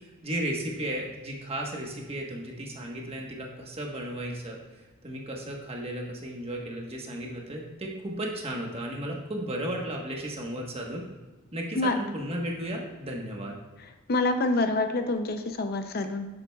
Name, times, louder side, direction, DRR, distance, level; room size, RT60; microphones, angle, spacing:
voice 1, 0.2-4.6 5.0-11.1 11.5-13.5, right 1 dB, 30° right, -1 dB, 1.2 m, -34 dB
voice 2, 14.1-16.3, left 2 dB, 45° left, 7 dB, 0.5 m, -26 dB
10.5 x 7.8 x 2.3 m, 1.2 s
head